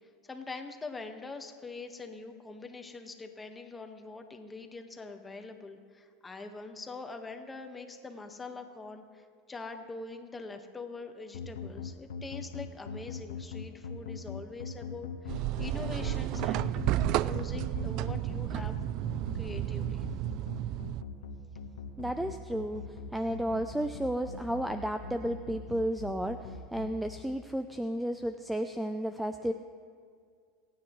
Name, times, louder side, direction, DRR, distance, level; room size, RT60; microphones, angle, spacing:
voice 1, 0.3-16.8 17.2-18.8 19.3-20.0, left 3 dB, 15° left, 5 dB, 1.5 m, -43 dB
sound 1, 11.3-26.9, left 6 dB, 80° left, 1.3 m, -40 dB
sound 2, 15.3-21.0, right 14 dB, 55° right, 0.3 m, -32 dB
voice 2, 22.0-22.8 23.1-29.5, equal, 5° right, 8 dB, 0.5 m, -33 dB
27.5 x 9.4 x 3.2 m, 2.1 s
hypercardioid pair, 95°, 0 cm